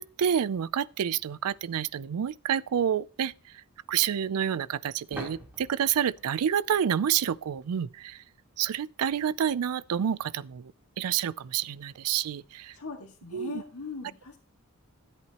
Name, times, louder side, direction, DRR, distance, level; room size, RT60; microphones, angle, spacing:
voice 1, 0.0-3.6 3.9-8.2 8.6-10.7 11.0-12.8 13.3-13.6, right 9 dB, 85° right, 0.4 m, -28 dB
sound 1, 5.1-7.8, right 1 dB, 10° right, 3.3 m, -45 dB
voice 2, 12.8-14.4, left 4 dB, 70° left, 2.0 m, -40 dB
13.5 x 8.4 x 2.9 m
head